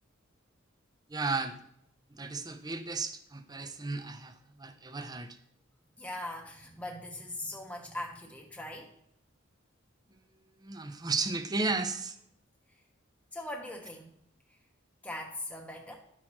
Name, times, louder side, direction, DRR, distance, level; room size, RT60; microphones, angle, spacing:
voice 1, 1.1-1.6 2.1-5.4 10.6-12.2, right 3 dB, 20° right, 9 dB, 0.6 m, -34 dB
voice 2, 6.0-8.9 13.3-14.2 14.5-14.6 15.0-15.9, left 1 dB, 5° left, 0 dB, 0.9 m, -40 dB
11.0 x 6.1 x 3.0 m, 0.73 s
head